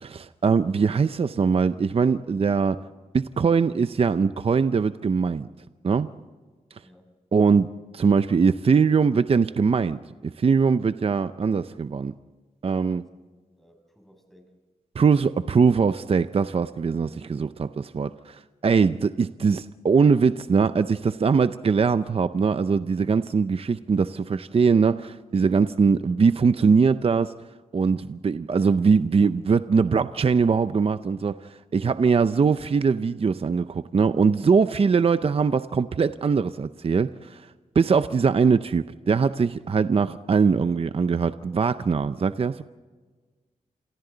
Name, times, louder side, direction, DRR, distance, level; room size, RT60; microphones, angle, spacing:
voice 1, 0.0-2.8 3.1-5.5 5.8-6.1 7.3-12.1 12.6-13.0 15.0-27.3 27.7-31.3 31.7-37.4 37.7-42.6, right 5 dB, 45° right, 12 dB, 0.6 m, -22 dB
voice 2, 12.7-13.1 13.5-14.5, equal, ahead, 2 dB, 6.0 m, -56 dB
29.0 x 27.5 x 4.0 m, 1.4 s
wide cardioid pair, 95°, 14 cm